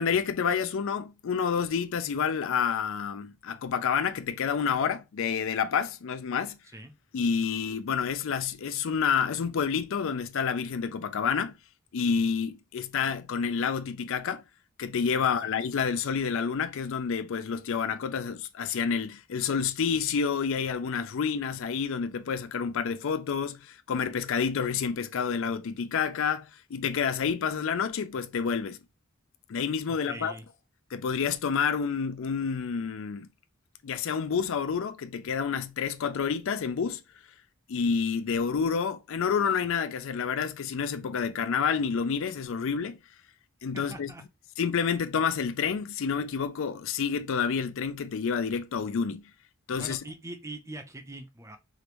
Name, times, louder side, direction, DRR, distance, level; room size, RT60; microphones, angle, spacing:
voice 1, 0.0-6.6 7.1-11.5 11.9-14.4 14.8-28.8 29.5-30.3 30.9-33.3 33.8-37.0 37.7-43.0 43.6-44.1 44.6-49.2 49.7-50.0, left 6 dB, 65° left, 0.4 m, -29 dB
voice 2, 30.0-30.4 43.7-44.2 49.8-51.6, right 1 dB, 15° right, 0.6 m, -42 dB
5.0 x 2.5 x 3.0 m
head